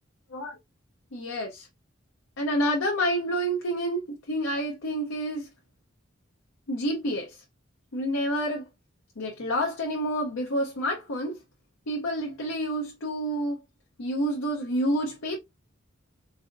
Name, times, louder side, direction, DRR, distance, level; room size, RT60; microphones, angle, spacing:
voice 1, 1.1-1.7 2.4-5.5 6.7-7.4 7.9-8.7 9.2-11.4 11.9-13.6 14.0-15.4, equal, 90° left, 0.7 m, -28 dB
4.1 x 2.7 x 2.5 m
head